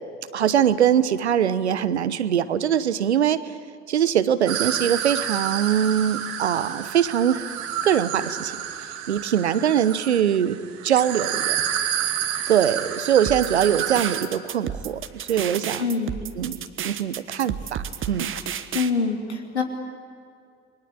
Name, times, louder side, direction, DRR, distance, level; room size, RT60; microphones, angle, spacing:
voice 1, 0.3-3.5 3.9-7.5 7.8-8.6 9.1-10.6 10.8-11.6 12.5-15.9 16.4-16.6 16.8-18.3, right 9 dB, 85° right, 15 dB, 0.9 m, -22 dB
sound 1, 4.5-14.2, right 10 dB, 65° right, 2.2 m, -29 dB
sound 2, 13.3-18.9, right 8 dB, 40° right, 1.5 m, -32 dB
voice 2, 15.8-16.1 18.7-19.6, left 5 dB, 85° left, 3 dB, 2.8 m, -24 dB
29.0 x 21.5 x 8.8 m, 2.4 s
figure-of-eight pair, 60°, 32 cm